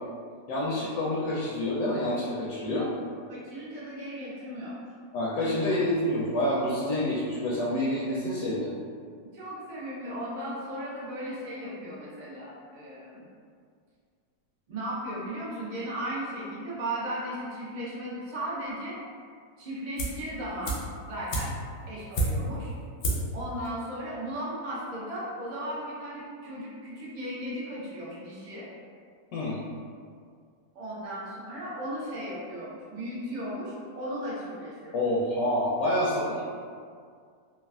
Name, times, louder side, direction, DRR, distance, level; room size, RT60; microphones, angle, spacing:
voice 1, 0.5-2.9 5.1-8.7 29.3-29.6 34.9-36.4, left 1 dB, 70° left, -6 dB, 0.9 m, -27 dB
voice 2, 3.3-4.8 9.3-13.3 14.7-19.0 19.6-20.8 21.1-21.5 21.9-22.7 23.3-28.7 30.7-35.0, right 1 dB, 75° right, -7 dB, 0.4 m, -36 dB
sound 1, 20.0-20.3 20.6-22.6 23.0-23.4 23.6-23.7, right 1 dB, 90° left, 1.3 m, -30 dB
3.2 x 2.3 x 2.3 m, 2.1 s
omnidirectional pair, 1.8 m